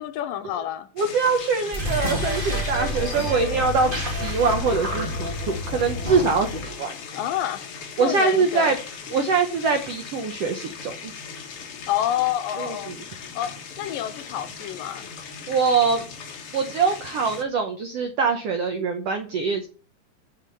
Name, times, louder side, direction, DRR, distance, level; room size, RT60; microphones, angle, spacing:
voice 1, 0.0-0.9 7.1-7.7 8.0-8.8 11.9-12.9 13.4-15.1, left 12 dB, 80° left, 2.3 m, -28 dB
sound 1, 1.0-17.4, left 6 dB, 60° left, 1.5 m, -39 dB
voice 2, 1.0-6.9 8.0-8.8 9.1-11.1 12.6-13.0 15.5-16.0 16.5-19.7, right 4 dB, 90° right, 1.3 m, -23 dB
sound 2, 1.7-6.7, left 1 dB, 20° right, 1.7 m, -28 dB
9.6 x 5.3 x 6.8 m
omnidirectional pair, 4.1 m